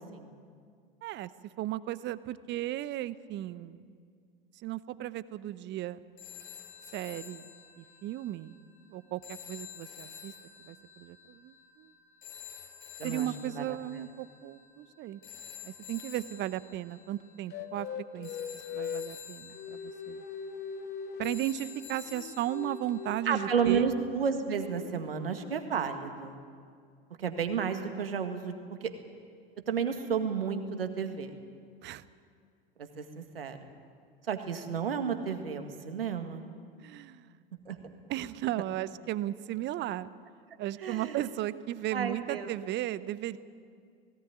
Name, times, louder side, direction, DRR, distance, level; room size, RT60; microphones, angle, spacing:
voice 1, 1.6-3.8 4.5-6.0 6.9-7.4 7.8-8.6 8.9-10.3 10.6-11.9 13.0-15.2 15.6-18.3 18.7-20.2 21.2-23.9 31.8-32.0 36.8-37.3 38.1-40.1 40.6-43.4, right 14 dB, 40° right, 16 dB, 0.9 m, -35 dB
sound 1, 6.2-23.1, left 8 dB, 60° left, 6.6 m, -49 dB
voice 2, 13.0-13.8 23.3-26.3 27.2-28.5 29.7-31.3 32.8-33.6 34.2-36.4 37.7-37.8 40.8-41.3 41.9-42.5, right 6 dB, 80° right, 7 dB, 1.9 m, -32 dB
sound 2, 17.5-19.1 19.5-21.5 21.8-24.1 24.6-25.6, left 7 dB, 35° left, 1.3 m, -41 dB
18.0 x 18.0 x 9.3 m, 2.2 s
figure-of-eight pair, 80°, 29 cm